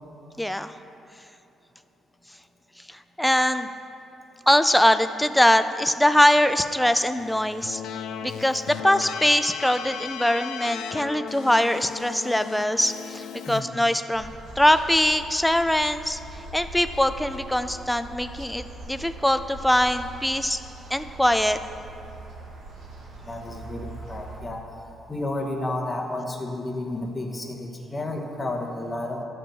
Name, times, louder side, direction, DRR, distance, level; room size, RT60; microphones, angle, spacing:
voice 1, 0.4-0.7 2.9-3.7 4.5-7.8 8.2-20.6 20.9-21.6, left 1 dB, 5° left, 10 dB, 0.3 m, -22 dB
Keyboard (musical), 7.2-13.6, left 7 dB, 80° left, 0.4 m, -36 dB
sound 1, 14.1-24.4, right 2 dB, 90° right, 1.5 m, -41 dB
voice 2, 23.2-29.2, left 2 dB, 20° left, 1 dB, 1.0 m, -32 dB
12.5 x 5.2 x 4.5 m, 2.9 s
cardioid pair, 135°, 0 cm